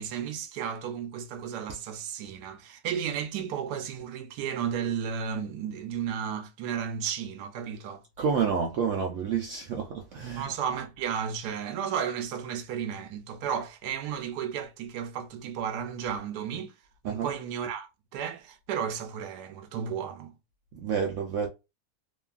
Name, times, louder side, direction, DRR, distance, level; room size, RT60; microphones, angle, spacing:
voice 1, 0.0-8.0 10.4-16.7 17.0-20.3, right 8 dB, 85° right, 1.1 m, -33 dB
voice 2, 8.2-10.5 17.0-17.3 20.8-21.5, right 6 dB, 70° right, 0.7 m, -29 dB
3.0 x 2.3 x 2.3 m
omnidirectional pair, 1.7 m